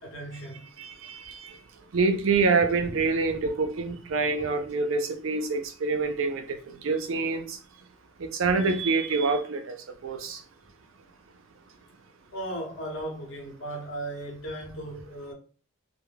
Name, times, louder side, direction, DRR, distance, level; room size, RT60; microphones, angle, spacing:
voice 1, 0.0-0.7 2.8-2.9 12.3-15.3, right 1 dB, 65° left, 1.0 m, -36 dB
voice 2, 0.8-1.6 1.9-7.6 8.2-9.8 10.0-10.4, right 4 dB, 70° right, 0.4 m, -26 dB
2.2 x 2.1 x 3.3 m
head